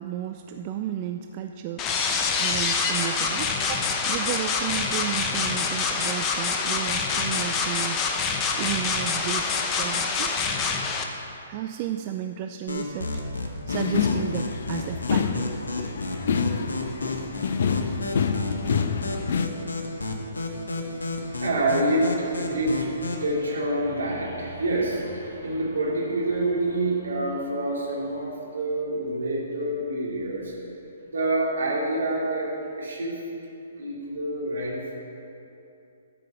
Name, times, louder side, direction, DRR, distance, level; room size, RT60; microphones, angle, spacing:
voice 1, 0.0-8.1 8.6-10.5 11.5-13.2 13.7-15.5 21.2-21.4, right 11 dB, 35° right, 6 dB, 0.3 m, -33 dB
sound 1, 1.8-11.0, left 5 dB, 25° left, 0.8 m, -26 dB
sound 2, 12.7-23.3, left 2 dB, 75° left, 1.2 m, -32 dB
sound 3, 13.7-19.5, left 6 dB, 60° left, 0.5 m, -27 dB
voice 2, 21.2-30.5 31.1-33.2 33.8-35.0, right 1 dB, 70° right, -4 dB, 2.5 m, -27 dB
12.5 x 5.1 x 5.7 m, 2.8 s
figure-of-eight pair, 125°, 0 cm